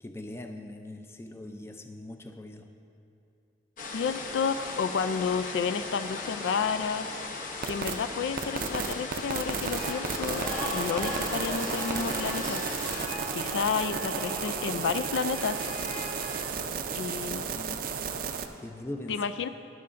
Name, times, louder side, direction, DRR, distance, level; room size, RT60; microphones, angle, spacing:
voice 1, 0.0-2.7 16.5-17.3 17.5-18.0 18.6-19.2, left 1 dB, 15° left, 6 dB, 0.4 m, -42 dB
sound 1, 3.8-13.1, left 3 dB, 50° left, 0.7 m, -38 dB
voice 2, 3.9-7.1 7.7-12.6 13.3-15.7 16.9-17.5 19.1-19.5, left 6 dB, 85° left, 11 dB, 0.3 m, -31 dB
sound 2, 7.6-7.9 8.4-18.5, right 6 dB, 50° right, 0.4 m, -33 dB
sound 3, 9.7-16.4, left 1 dB, 30° left, 1.8 m, -38 dB
12.0 x 10.5 x 2.5 m, 2.7 s
head